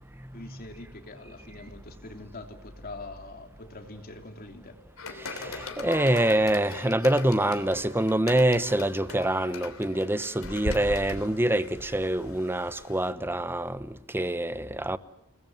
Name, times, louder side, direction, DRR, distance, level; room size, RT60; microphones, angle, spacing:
voice 1, 0.3-4.8, left 2 dB, 45° left, 3.2 m, -44 dB
sound 1, 5.0-13.1, left 2 dB, 70° left, 3.3 m, -40 dB
voice 2, 5.2-15.0, right 1 dB, 10° right, 1.0 m, -26 dB
29.5 x 20.5 x 7.8 m
head